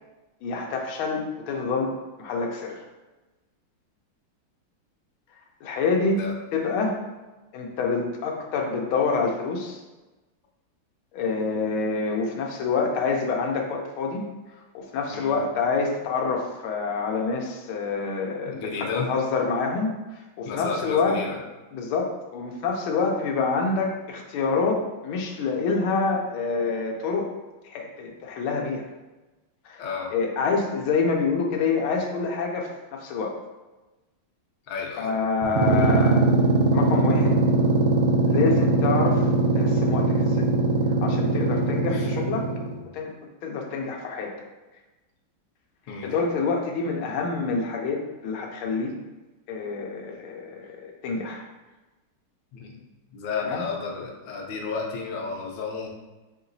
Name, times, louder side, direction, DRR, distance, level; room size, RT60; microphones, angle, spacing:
voice 1, 0.4-1.9 2.2-2.8 5.6-7.0 7.5-9.8 11.1-14.3 14.7-19.9 20.4-21.2 21.7-27.3 27.6-28.9 29.6-29.8 30.1-33.3 35.0-36.3 36.7-37.4 38.3-39.3 39.5-40.5 41.0-42.5 42.9-43.1 43.4-44.3 46.0-48.9 49.5-51.5 53.5-53.6, left 4 dB, 90° left, 1 dB, 1.5 m, -27 dB
voice 2, 18.5-19.1 20.5-21.4 29.8-30.1 34.7-35.1 41.9-42.1 45.9-46.1 52.5-52.8 53.1-55.9, left 5 dB, 70° left, -1 dB, 1.3 m, -32 dB
sound 1, 35.4-42.8, right 2 dB, 80° right, 1.3 m, -21 dB
5.8 x 2.8 x 2.6 m, 1.1 s
omnidirectional pair, 2.2 m